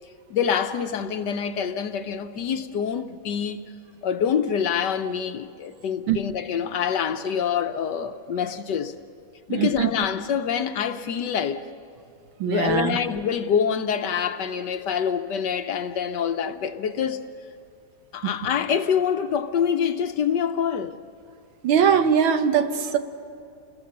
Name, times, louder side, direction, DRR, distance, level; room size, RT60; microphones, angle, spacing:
voice 1, 0.3-3.6 4.0-8.9 9.5-11.6 12.5-17.2 18.1-21.0, left 7 dB, 65° left, 1.3 m, -26 dB
voice 2, 9.5-9.9 12.4-13.0 18.2-18.3 21.6-23.0, right 7 dB, 85° right, 1.9 m, -21 dB
29.5 x 20.5 x 6.6 m
omnidirectional pair, 2.2 m